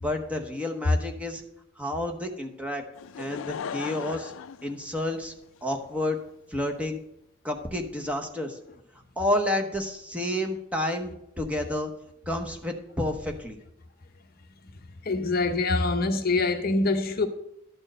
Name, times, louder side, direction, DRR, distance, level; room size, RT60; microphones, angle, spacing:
voice 1, 0.0-1.4 1.8-2.8 3.2-4.3 4.6-5.3 5.6-6.2 6.5-7.0 7.4-8.6 9.2-11.9 12.3-13.6, left 1 dB, 5° right, 0.9 m, -30 dB
Laughter / Crowd, 3.0-5.6 6.3-6.4, left 7 dB, 65° left, 0.3 m, -37 dB
voice 2, 15.0-17.3, left 3 dB, 45° left, 0.7 m, -24 dB
12.0 x 4.4 x 7.6 m
head